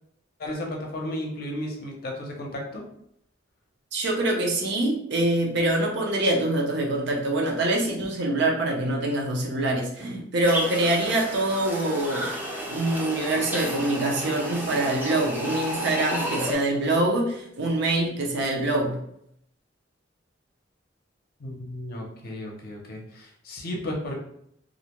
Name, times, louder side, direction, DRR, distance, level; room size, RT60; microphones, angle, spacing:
voice 1, 0.4-2.8 21.4-24.2, left 1 dB, 50° left, -1 dB, 0.6 m, -34 dB
voice 2, 3.9-12.3 12.7-19.0, right 2 dB, 60° right, 0 dB, 0.5 m, -25 dB
sound 1, 10.4-16.5, equal, 10° right, 0.5 m, -32 dB
2.4 x 2.1 x 2.9 m, 0.72 s
head